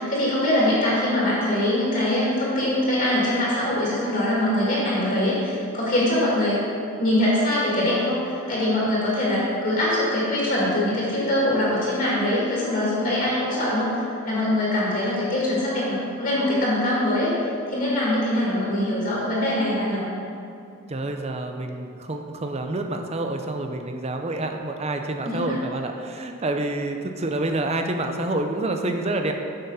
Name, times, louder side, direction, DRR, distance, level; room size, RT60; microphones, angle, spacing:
voice 1, 0.0-6.6 7.0-17.3 17.7-20.0 25.2-25.5, left 1 dB, 40° left, -6 dB, 2.3 m, -23 dB
voice 2, 20.9-29.3, right 2 dB, 30° right, 5 dB, 0.6 m, -28 dB
7.7 x 6.5 x 5.5 m, 2.6 s
head